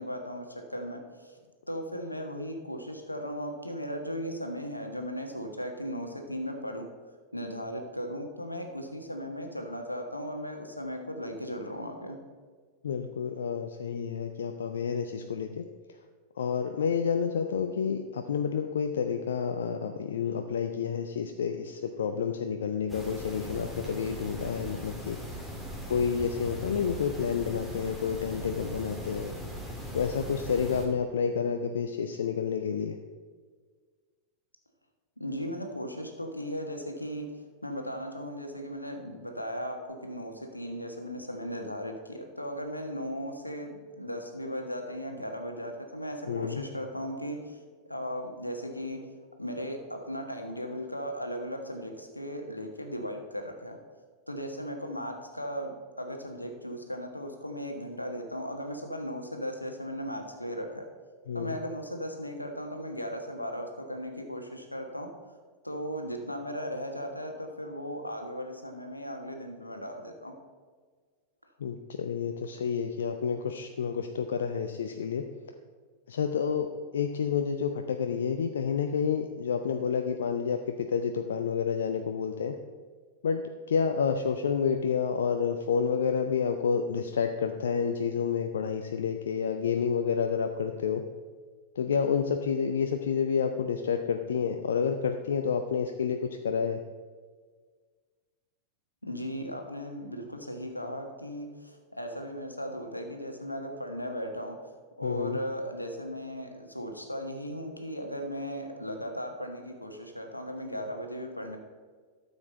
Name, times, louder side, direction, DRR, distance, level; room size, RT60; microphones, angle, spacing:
voice 1, 0.0-1.4 1.7-6.9 7.3-12.2 35.2-37.3 37.6-47.6 47.9-49.0 49.4-53.8 54.3-60.8 61.3-65.1 65.6-70.3 99.0-104.7 105.0-111.6, equal, 85° left, 4 dB, 1.3 m, -37 dB
voice 2, 12.8-15.6 16.4-25.2 25.9-29.3 29.9-33.0 46.3-46.6 61.3-61.6 71.6-75.2 76.1-76.7 76.9-82.5 83.2-83.4 83.7-91.0 91.8-96.2 96.4-96.8 105.0-105.4, left 6 dB, 65° left, 6 dB, 0.5 m, -29 dB
sound 1, 22.9-30.9, equal, 5° right, 2.1 m, -39 dB
13.0 x 7.1 x 4.0 m, 1.5 s
figure-of-eight pair, 90°, 0 cm